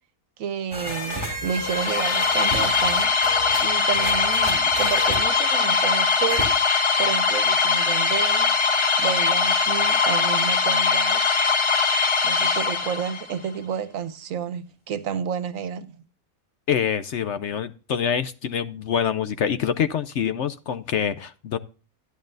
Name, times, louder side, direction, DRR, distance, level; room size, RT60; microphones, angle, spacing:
voice 1, 0.4-3.2 3.6-11.4 12.2-16.0, right 7 dB, 70° right, 1.1 m, -31 dB
sound 1, 0.7-5.2 6.3-6.4, equal, 15° left, 2.8 m, -32 dB
sound 2, 1.5-13.3, left 4 dB, 30° left, 0.6 m, -21 dB
voice 2, 16.7-21.6, left 8 dB, 65° left, 0.8 m, -25 dB
11.5 x 11.0 x 2.6 m
omnidirectional pair, 1.5 m